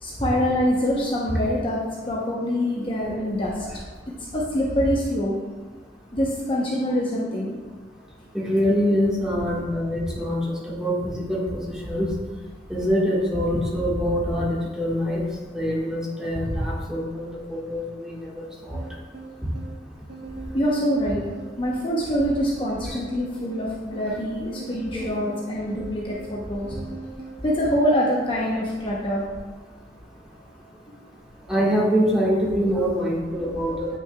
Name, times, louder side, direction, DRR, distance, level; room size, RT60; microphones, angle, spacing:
voice 1, 0.0-3.8 4.3-5.3 6.1-7.6 20.5-21.2 21.6-26.7 27.4-29.3, equal, 30° left, -4 dB, 0.8 m, -25 dB
voice 2, 8.3-10.4 10.8-12.1 12.7-14.5 14.8-15.2 15.5-18.4 24.9-25.2 31.5-33.9, equal, 5° right, -6 dB, 1.5 m, -24 dB
sound 1, 18.7-27.4, right 3 dB, 55° right, 1.2 m, -41 dB
9.0 x 6.0 x 2.3 m, 1.3 s
head